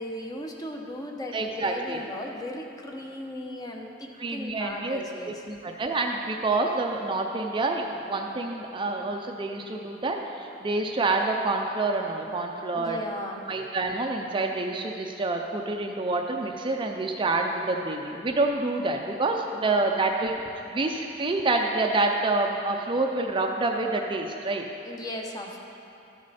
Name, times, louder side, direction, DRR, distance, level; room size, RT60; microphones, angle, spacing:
voice 1, 0.0-5.4 12.7-13.5 19.5-20.0 24.8-25.6, left 1 dB, 20° left, 1 dB, 0.8 m, -37 dB
voice 2, 1.3-2.0 4.2-5.0 5.5-13.0 13.5-20.3 20.7-24.7, right 2 dB, 25° right, 2 dB, 0.5 m, -27 dB
13.0 x 6.4 x 4.2 m, 2.8 s
head